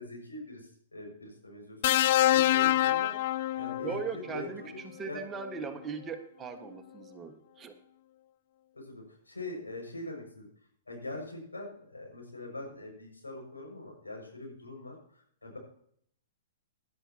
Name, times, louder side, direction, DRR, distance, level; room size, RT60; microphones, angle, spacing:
voice 1, 0.0-4.8 5.0-5.2 8.7-10.5 10.9-14.9 15.4-15.6, left 2 dB, 85° left, 0 dB, 6.2 m, -43 dB
sound 1, 1.8-4.1 5.4-5.6, left 13 dB, 50° left, 0.4 m, -25 dB
voice 2, 3.8-7.7, right 6 dB, 20° right, 6 dB, 1.6 m, -39 dB
17.5 x 11.0 x 2.9 m, 0.64 s
figure-of-eight pair, 110°, 0 cm